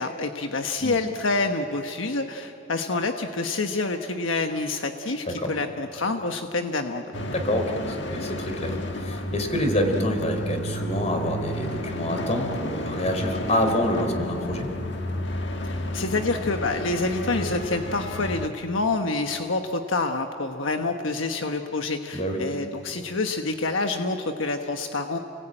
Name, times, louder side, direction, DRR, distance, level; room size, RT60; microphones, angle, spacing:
voice 1, 0.0-7.0 8.7-8.8 15.6-25.2, left 3 dB, 80° left, 5 dB, 1.2 m, -27 dB
sound 1, 7.1-18.5, left 1 dB, 60° left, 1.5 m, -32 dB
voice 2, 7.3-14.7 22.1-22.4, left 1 dB, 35° left, 5 dB, 3.7 m, -27 dB
29.5 x 20.0 x 9.0 m, 2.7 s
head